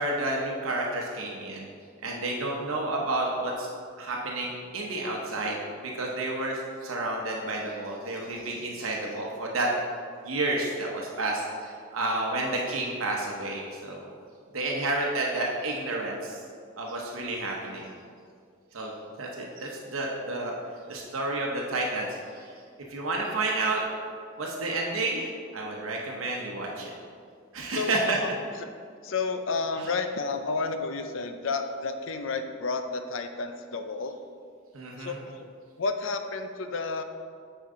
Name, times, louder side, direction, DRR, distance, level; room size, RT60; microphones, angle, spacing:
voice 1, 0.0-1.7 2.0-3.7 4.0-9.7 10.2-14.1 14.5-16.4 16.8-17.9 18.7-18.9 19.2-20.5 20.9-22.1 22.4-22.5 22.9-23.8 24.4-26.9 27.5-28.2 29.8-29.9 34.7-35.2, right 2 dB, 85° right, -1 dB, 0.9 m, -30 dB
voice 2, 27.7-28.3 28.6-28.7 29.0-34.2 35.0-35.5 35.8-37.0, left 4 dB, 65° left, 8 dB, 0.5 m, -31 dB
8.9 x 4.6 x 3.8 m, 2.2 s
head